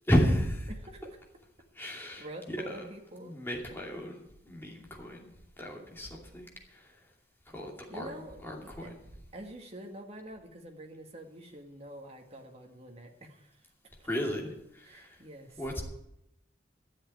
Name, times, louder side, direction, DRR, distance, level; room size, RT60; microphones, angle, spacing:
voice 1, 0.1-0.7 1.7-2.9 3.1-4.2 4.4-5.3 5.6-6.9 7.5-8.1 8.4-9.0 14.0-15.2 15.6-15.8, equal, 10° left, -1 dB, 2.6 m, -33 dB
voice 2, 0.7-1.0 2.2-3.3 7.9-8.9 9.3-13.6 14.0-14.1 14.8-15.6, right 1 dB, 35° right, 3 dB, 1.9 m, -46 dB
13.0 x 7.7 x 9.1 m, 0.82 s
head